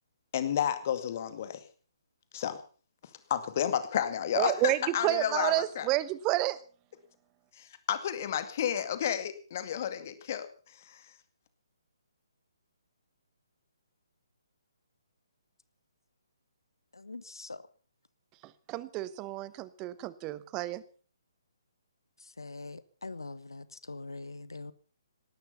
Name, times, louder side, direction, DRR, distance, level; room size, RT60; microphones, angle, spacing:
voice 1, 0.3-1.6 2.3-2.6 3.3-5.9 7.6-11.0, left 9 dB, 40° left, 2.2 m, -31 dB
voice 2, 4.3-6.6 18.4-20.8, right 16 dB, 20° right, 1.0 m, -30 dB
voice 3, 16.9-17.6 22.4-24.7, left 3 dB, 70° left, 1.3 m, -43 dB
18.5 x 13.0 x 5.7 m
figure-of-eight pair, 135°, 2 cm